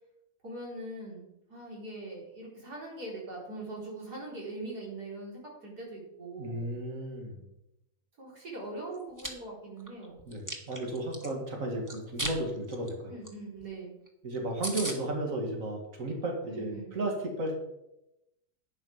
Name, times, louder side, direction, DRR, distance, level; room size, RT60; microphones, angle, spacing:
voice 1, 0.4-6.7 8.2-10.2 13.1-14.0 16.4-17.0, right 2 dB, 90° right, -4 dB, 4.7 m, -42 dB
voice 2, 6.4-7.5 10.3-13.1 14.2-17.6, right 1 dB, 55° right, 1 dB, 2.6 m, -34 dB
Chewing mastication, 8.9-9.3 9.8-11.3 11.9-12.4 12.7-12.9 13.2-13.3 13.6-13.7 14.1-14.2 14.3-14.4 14.6-15.0, right 1 dB, 10° right, 1.5 m, -36 dB
11.5 x 9.3 x 5.1 m, 0.88 s
omnidirectional pair, 1.6 m